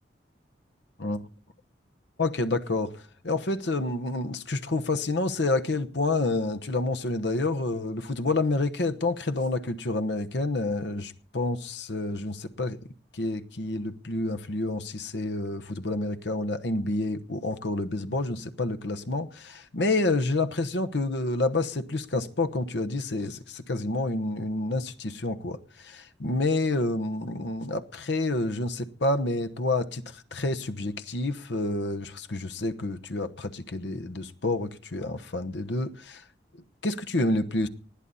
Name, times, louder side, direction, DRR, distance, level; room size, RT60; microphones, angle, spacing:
voice 1, 2.2-12.8 13.1-36.2 36.8-37.7, left 2 dB, 70° left, 1.1 m, -29 dB
20.0 x 12.5 x 4.1 m
head